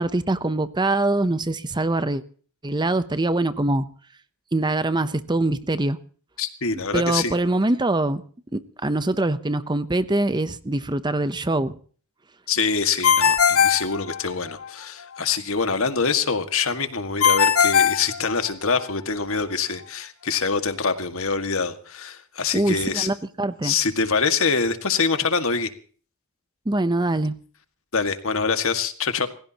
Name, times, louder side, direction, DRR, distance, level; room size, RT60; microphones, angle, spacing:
voice 1, 0.0-2.2 2.6-3.9 4.5-6.0 6.9-8.2 8.5-11.7 22.5-23.7 26.7-27.4, right 2 dB, 20° right, 0.7 m, -23 dB
voice 2, 6.4-7.4 12.5-23.1 23.6-25.7 27.9-29.3, left 5 dB, 70° left, 1.9 m, -25 dB
Ringtone, 13.0-14.7 17.2-18.8, left 7 dB, 90° left, 1.2 m, -19 dB
29.5 x 16.0 x 2.9 m
head